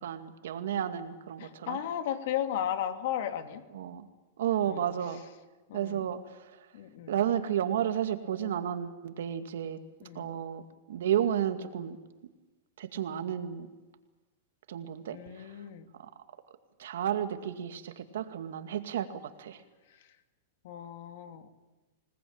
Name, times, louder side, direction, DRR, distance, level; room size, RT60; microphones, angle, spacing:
voice 1, 0.0-1.8 3.7-4.1 4.4-5.2 5.7-6.7 7.1-9.8 10.1-10.6 10.9-12.0 12.8-13.7 14.7-15.6 16.0-16.1 16.8-19.6, right 10 dB, 80° right, 7 dB, 2.3 m, -32 dB
voice 2, 1.4-3.6 4.6-4.9 5.7-6.1 6.7-7.2 10.0-10.4 15.1-15.9 20.6-21.5, left 10 dB, 60° left, 7 dB, 2.6 m, -35 dB
27.0 x 19.5 x 9.0 m, 1.2 s
supercardioid pair, 155°, 0 cm